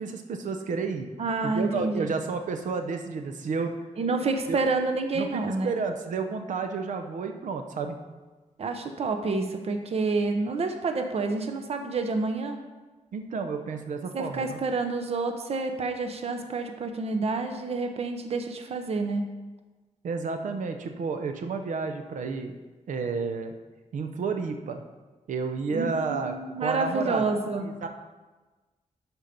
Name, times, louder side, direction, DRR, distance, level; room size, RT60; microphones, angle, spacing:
voice 1, 0.0-1.1 1.4-3.7 4.5-4.6 5.1-8.0 13.1-14.6 20.0-22.6 22.9-23.5 23.9-24.8 25.3-26.3 26.6-27.3 27.6-27.9, right 4 dB, 90° right, 6 dB, 0.7 m, -31 dB
voice 2, 1.2-2.1 4.0-5.7 8.6-12.6 14.1-19.3 25.7-27.7, right 3 dB, 55° right, 6 dB, 0.8 m, -28 dB
12.0 x 4.5 x 5.2 m, 1.2 s
wide cardioid pair, 160°, 13 cm